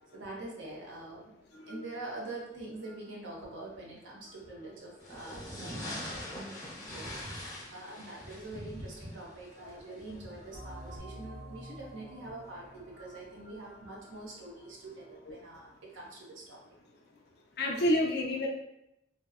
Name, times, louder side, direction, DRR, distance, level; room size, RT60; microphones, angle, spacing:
voice 1, 0.1-1.3 1.7-16.6, right 2 dB, 85° right, -3 dB, 0.6 m, -45 dB
sound 1, 5.0-11.0, left 1 dB, 20° left, 0.7 m, -43 dB
sound 2, 10.5-15.8, right 1 dB, 30° right, 0.4 m, -49 dB
voice 2, 17.6-18.5, left 1 dB, 55° left, 0 dB, 0.5 m, -29 dB
2.7 x 2.0 x 2.4 m, 0.83 s
head